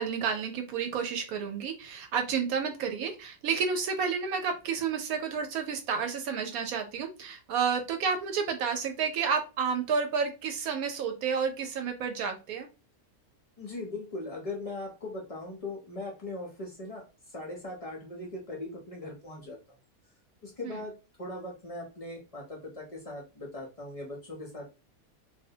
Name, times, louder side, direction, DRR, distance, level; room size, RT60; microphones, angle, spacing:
voice 1, 0.0-12.7 20.6-20.8, right 6 dB, 80° right, 6 dB, 1.1 m, -30 dB
voice 2, 13.6-19.6 20.4-24.7, left 2 dB, 55° left, -1 dB, 0.4 m, -40 dB
2.6 x 2.1 x 2.7 m, 0.30 s
omnidirectional pair, 1.5 m